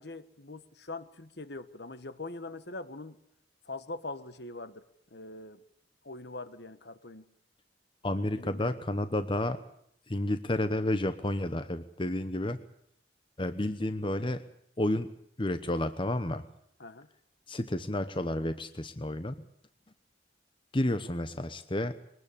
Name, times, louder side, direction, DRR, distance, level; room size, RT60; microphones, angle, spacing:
voice 1, 0.0-3.2 3.6-4.8 5.1-5.6 6.0-7.3 8.3-8.8 16.8-17.1, left 2 dB, 65° left, 12 dB, 1.4 m, -42 dB
voice 2, 8.0-9.6 10.1-12.6 13.4-14.4 14.8-15.1 15.4-16.4 17.5-19.3 20.7-22.0, left 1 dB, 30° left, 10 dB, 1.0 m, -31 dB
22.5 x 19.0 x 8.6 m, 0.69 s
head